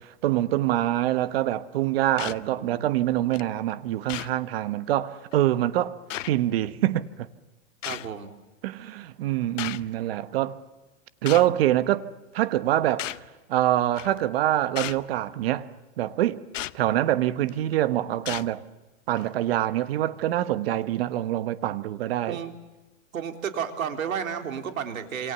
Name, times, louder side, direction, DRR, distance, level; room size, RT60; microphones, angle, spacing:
voice 1, 0.0-6.0 6.3-7.3 8.6-10.6 11.2-12.1 12.3-13.2 13.5-15.7 16.0-16.4 16.7-18.6 19.1-22.4, right 13 dB, 45° right, 1.3 m, -25 dB
sound 1, 2.2-2.4 3.3-3.4 4.1-4.3 5.3-5.4 6.1-6.3 7.8-8.1 9.6-9.8 11.3-11.5 13.0-13.3 14.0-14.2 14.8-15.0 16.5-16.8 17.5-17.7 18.3-18.5 19.2-19.3, left 13 dB, 70° left, 0.9 m, -34 dB
voice 2, 2.3-2.9 7.9-8.3 22.3-22.5 23.1-25.3, right 8 dB, 85° right, 3.8 m, -32 dB
27.5 x 27.5 x 6.9 m
hypercardioid pair, 160°, 40 cm